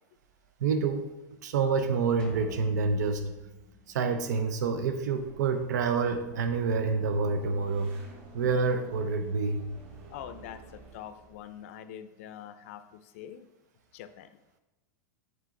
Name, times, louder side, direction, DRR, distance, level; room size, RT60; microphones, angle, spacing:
voice 1, 0.6-1.1 1.4-3.2 3.9-7.9 8.3-9.6, right 4 dB, 85° right, 7 dB, 0.6 m, -27 dB
sound 1, 2.2-4.7, left 2 dB, 10° left, 0.7 m, -49 dB
sound 2, 5.1-11.6, right 2 dB, 45° right, 1.2 m, -50 dB
voice 2, 10.1-13.5 13.9-14.4, left 10 dB, 50° left, 11 dB, 0.4 m, -44 dB
7.7 x 4.0 x 3.8 m, 1.0 s
supercardioid pair, 175°, 9 cm